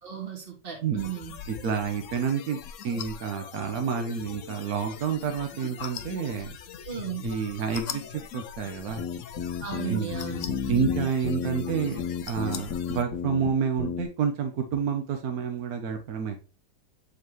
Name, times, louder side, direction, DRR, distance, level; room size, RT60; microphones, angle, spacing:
voice 1, 0.0-1.3 6.8-7.2 9.6-10.4, right 9 dB, 30° right, 1 dB, 1.9 m, -35 dB
sound 1, 1.0-13.0, left 9 dB, 85° left, 0.6 m, -41 dB
voice 2, 1.5-2.6 2.8-6.5 7.2-9.0 9.9-10.2 10.7-12.0 12.3-16.5, right 6 dB, 60° right, 5 dB, 1.1 m, -29 dB
sound 2, 8.9-13.5 13.8-14.0, left 7 dB, 60° left, 1.3 m, -32 dB
7.2 x 4.6 x 3.0 m, 0.34 s
omnidirectional pair, 2.1 m